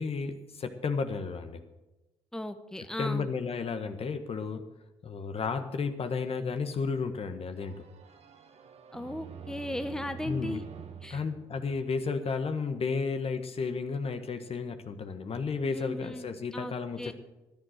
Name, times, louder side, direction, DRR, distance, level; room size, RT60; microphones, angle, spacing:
voice 1, 0.0-1.6 3.0-4.7 5.0-7.9 10.2-10.6 11.1-17.1, left 5 dB, 50° left, 8 dB, 1.5 m, -33 dB
voice 2, 2.3-3.3 8.9-10.6 11.0-11.2 15.6-17.1, left 1 dB, 5° left, 9 dB, 1.1 m, -37 dB
sound 1, 7.6-12.3, right 7 dB, 55° right, 1.5 m, -47 dB
14.0 x 10.5 x 6.5 m, 1.0 s
hypercardioid pair, 50°, 13 cm